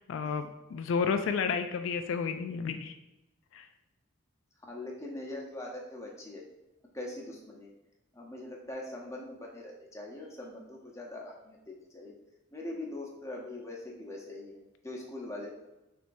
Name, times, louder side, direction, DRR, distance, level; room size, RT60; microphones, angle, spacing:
voice 1, 0.0-3.0 3.5-3.7, left 5 dB, 70° left, 7 dB, 0.3 m, -31 dB
voice 2, 4.6-6.4 6.9-7.7 8.1-12.1 12.5-15.7, left 1 dB, 15° left, -1 dB, 0.8 m, -42 dB
6.1 x 3.3 x 2.6 m, 0.97 s
head